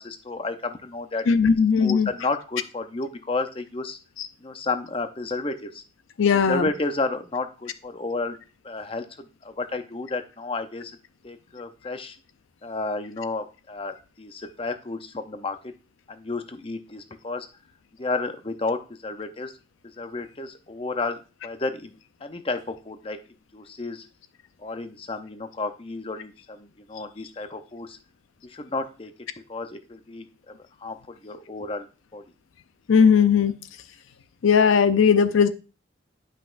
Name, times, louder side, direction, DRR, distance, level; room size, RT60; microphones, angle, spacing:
voice 1, 0.0-4.0 4.4-5.8 6.5-8.4 8.6-11.0 11.2-12.2 12.6-15.7 16.1-17.5 18.0-19.5 20.0-21.9 22.2-23.2 23.5-24.1 24.6-28.0 28.4-29.1 29.5-30.5 30.8-31.9 32.1-32.2, left 3 dB, 25° left, 8 dB, 0.6 m, -32 dB
voice 2, 1.3-2.1 4.2-4.3 6.2-6.7 32.9-33.5 34.4-35.5, left 6 dB, 75° left, 12 dB, 0.5 m, -18 dB
10.0 x 5.7 x 2.5 m, 0.33 s
head